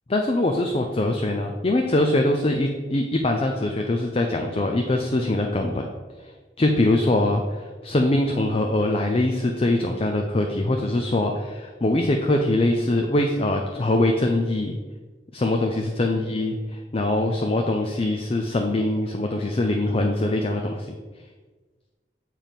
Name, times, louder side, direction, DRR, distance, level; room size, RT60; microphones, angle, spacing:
voice 1, 0.1-5.8 6.6-7.4 7.8-14.7 15.3-16.5 16.9-21.0, left 1 dB, 35° left, 3 dB, 0.5 m, -23 dB
7.4 x 4.6 x 5.2 m, 1.3 s
head